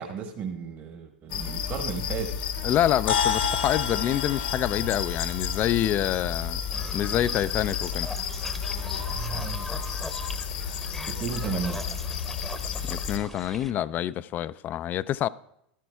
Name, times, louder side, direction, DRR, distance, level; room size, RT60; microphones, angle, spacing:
voice 1, 0.0-2.7 9.1-9.7 11.0-12.0, right 6 dB, 35° right, 1.2 m, -34 dB
sound 1, 1.3-13.2, left 7 dB, 60° left, 1.0 m, -32 dB
voice 2, 2.6-6.6 6.9-8.1 12.9-15.3, left 12 dB, 35° left, 0.3 m, -27 dB
sound 2, 3.1-7.7, left 7 dB, 80° left, 1.3 m, -32 dB
sound 3, 6.7-13.7, left 1 dB, 5° left, 0.8 m, -40 dB
14.5 x 13.0 x 2.3 m
hypercardioid pair, 95°, 5 cm